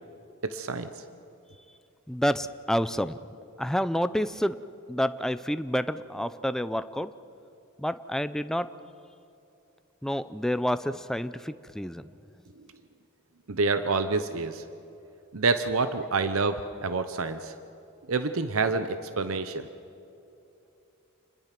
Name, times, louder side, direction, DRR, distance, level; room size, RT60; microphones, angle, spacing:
voice 1, 0.4-0.9 13.5-14.6 15.3-17.5 18.1-19.7, right 4 dB, 75° right, 10 dB, 0.8 m, -27 dB
voice 2, 2.1-3.2 3.6-4.6 4.9-7.1 7.8-8.7 10.0-12.0, equal, ahead, 12 dB, 0.5 m, -28 dB
28.0 x 21.0 x 6.0 m, 2.8 s
head